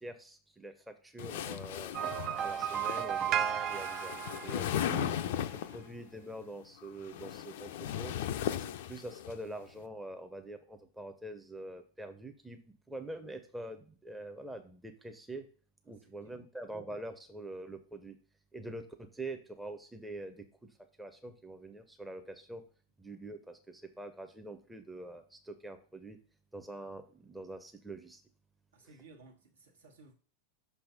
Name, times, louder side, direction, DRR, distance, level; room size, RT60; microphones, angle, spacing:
voice 1, 0.0-1.9 2.4-5.1 5.5-7.7 8.0-8.1 8.7-12.6 12.9-15.5 15.9-18.2 18.5-20.4 21.0-22.6 23.0-26.2 26.5-28.2, right 2 dB, 5° right, 0.7 m, -45 dB
sound 1, 1.2-5.9 6.9-9.3, left 10 dB, 55° left, 0.4 m, -37 dB
sound 2, 1.9-5.3, right 10 dB, 35° right, 0.3 m, -34 dB
voice 2, 16.0-16.5 28.7-30.1, right 3 dB, 70° right, 1.3 m, -58 dB
5.8 x 3.4 x 5.5 m
figure-of-eight pair, 90°, 0 cm